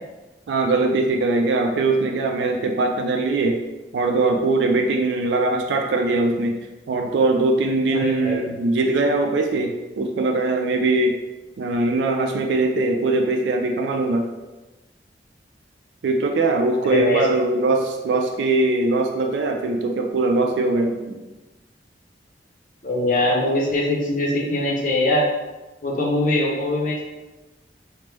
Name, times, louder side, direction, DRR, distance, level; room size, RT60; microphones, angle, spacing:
voice 1, 0.5-3.6 3.9-6.6 6.9-11.2 11.6-14.3 16.0-21.2, right 2 dB, 80° right, 3 dB, 0.3 m, -21 dB
voice 2, 7.9-8.5 16.9-17.2 22.8-25.3 25.8-27.0, left 1 dB, 45° left, -2 dB, 0.6 m, -22 dB
3.1 x 2.0 x 3.3 m, 1.1 s
head